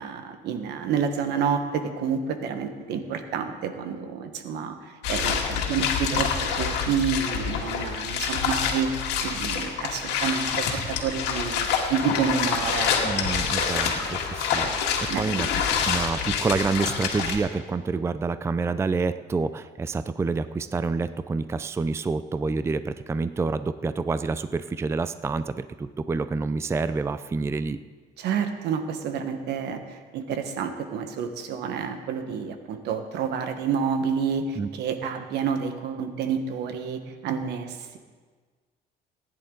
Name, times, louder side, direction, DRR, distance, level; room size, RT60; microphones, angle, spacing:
voice 1, 0.0-6.3 6.6-8.9 9.2-13.0 13.3-13.8 15.1-15.2 28.2-38.0, right 6 dB, 80° right, 7 dB, 1.3 m, -29 dB
sound 1, 5.0-17.4, left 6 dB, 85° left, 2.0 m, -27 dB
voice 2, 13.0-14.7 15.0-15.5 15.8-27.8 34.6-34.7, right 4 dB, 15° right, 13 dB, 0.4 m, -28 dB
19.0 x 10.5 x 3.9 m, 1.5 s
cardioid pair, 110°, 17 cm